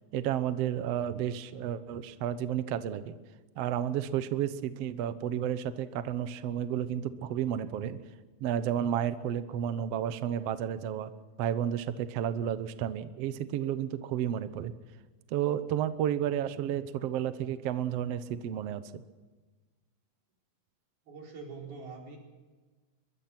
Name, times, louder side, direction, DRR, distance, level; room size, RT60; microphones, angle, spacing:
voice 1, 0.1-3.2 3.6-8.0 8.4-11.1 11.4-14.7 15.3-19.0, right 10 dB, 90° right, 12 dB, 1.4 m, -32 dB
voice 2, 21.1-22.2, right 4 dB, 75° right, -1 dB, 6.4 m, -44 dB
22.5 x 22.5 x 6.0 m, 1.3 s
omnidirectional pair, 4.4 m